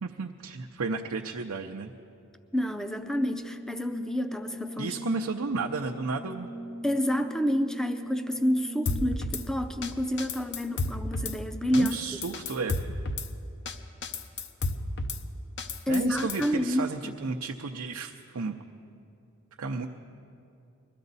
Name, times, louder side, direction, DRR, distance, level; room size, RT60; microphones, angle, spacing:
voice 1, 0.0-1.9 4.8-6.5 11.7-13.0 15.9-18.6 19.6-19.9, right 4 dB, 85° right, 3 dB, 0.6 m, -33 dB
voice 2, 2.5-5.0 6.8-12.0 15.9-17.2, equal, 5° left, 9 dB, 0.5 m, -29 dB
Brass instrument, 2.9-9.3, left 1 dB, 75° left, 3.5 m, -40 dB
Drum kit / Snare drum, 8.9-9.4 9.8-9.9 10.2-11.4 11.7-11.9 12.2-13.3 13.7-13.8 14.0-15.2 15.6-16.5, left 3 dB, 55° left, 0.7 m, -32 dB
21.5 x 14.0 x 4.1 m, 2.5 s
head